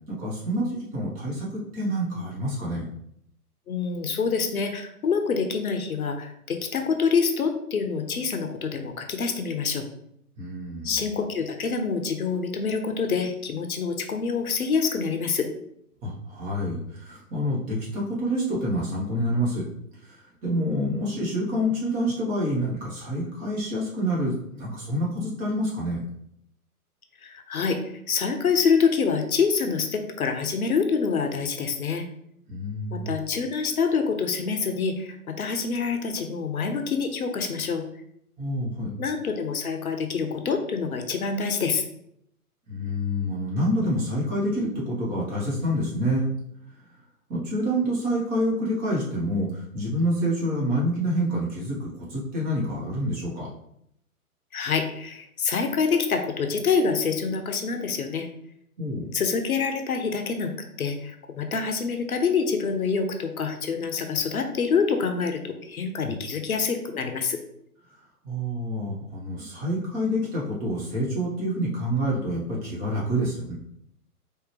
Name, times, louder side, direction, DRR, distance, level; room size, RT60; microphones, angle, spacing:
voice 1, 0.1-2.9 10.4-11.0 16.0-19.7 20.0-26.0 32.5-33.1 38.4-38.9 42.7-46.3 47.3-53.5 58.8-59.1 66.0-66.1 67.9-68.0 68.2-73.5, equal, 20° right, -5 dB, 1.2 m, -27 dB
voice 2, 3.7-9.9 10.8-15.5 27.2-32.1 32.9-37.8 39.0-41.8 54.5-58.3 59.1-60.5 60.8-67.4, left 5 dB, 70° left, 6 dB, 0.8 m, -26 dB
4.5 x 3.3 x 3.1 m, 0.74 s
figure-of-eight pair, 125°, 45 cm